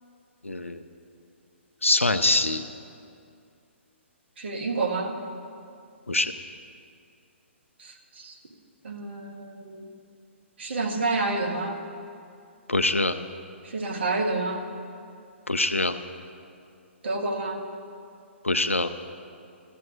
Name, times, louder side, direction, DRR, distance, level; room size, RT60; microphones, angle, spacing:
voice 1, 0.4-0.8 1.8-2.6 6.1-6.3 12.7-13.1 15.5-16.0 18.4-18.9, left 2 dB, 90° left, 10 dB, 0.6 m, -23 dB
voice 2, 4.4-5.2 7.8-8.4 8.8-9.9 10.6-11.9 13.6-14.6 17.0-17.6, right 3 dB, 60° right, 3 dB, 1.5 m, -29 dB
13.0 x 7.6 x 6.3 m, 2.5 s
figure-of-eight pair, 125°, 7 cm